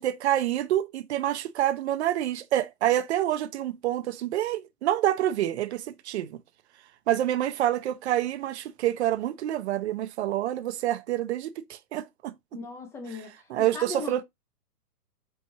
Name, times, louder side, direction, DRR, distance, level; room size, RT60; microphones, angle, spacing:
voice 1, 0.0-6.4 7.1-12.3 13.5-14.2, right 12 dB, 45° right, 0.7 m, -27 dB
voice 2, 12.5-13.5 13.7-14.1, left 4 dB, 5° left, 0.6 m, -38 dB
4.6 x 4.3 x 2.7 m
hypercardioid pair, 130°, 48 cm